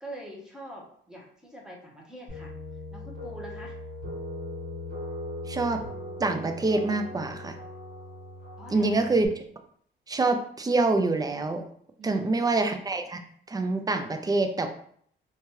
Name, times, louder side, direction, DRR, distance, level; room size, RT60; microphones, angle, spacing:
voice 1, 0.0-2.5 2.9-3.8 8.6-9.0 12.0-12.5, right 1 dB, 5° right, -2 dB, 0.8 m, -44 dB
sound 1, 2.3-9.3, left 1 dB, 50° right, 1.5 m, -39 dB
voice 2, 5.5-5.8 6.2-7.6 8.7-9.4 10.1-11.6 12.0-13.2 13.5-14.7, right 3 dB, 20° right, 7 dB, 0.3 m, -26 dB
2.8 x 2.3 x 3.0 m, 0.63 s
cardioid pair, 90°, 20 cm